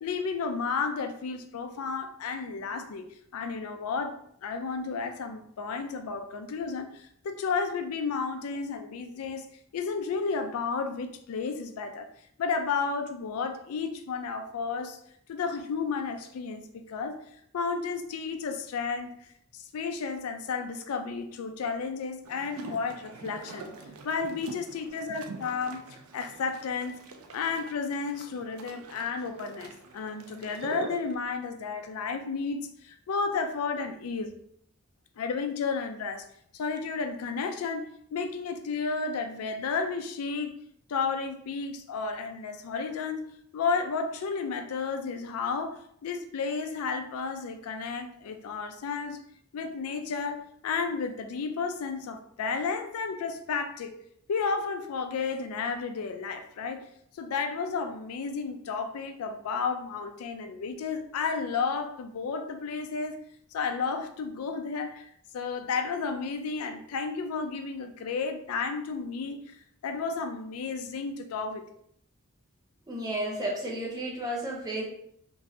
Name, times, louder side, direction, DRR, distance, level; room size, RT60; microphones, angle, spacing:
voice 1, 0.0-3.0 3.3-4.2 4.4-9.5 9.7-12.1 12.4-15.0 15.3-17.2 17.5-19.1 19.5-23.7 24.0-27.0 27.3-34.3 35.2-36.2 36.5-40.5 40.9-43.2 43.5-49.2 49.5-54.0 54.3-56.8 57.1-63.2 63.5-65.1 65.3-69.6 69.8-71.6, left 5 dB, 90° left, 7 dB, 0.4 m, -32 dB
sound 1, 22.3-31.2, right 3 dB, 80° right, 0.4 m, -45 dB
voice 2, 72.9-74.8, right 1 dB, 20° right, -2 dB, 0.7 m, -32 dB
3.1 x 2.5 x 2.6 m, 0.68 s
head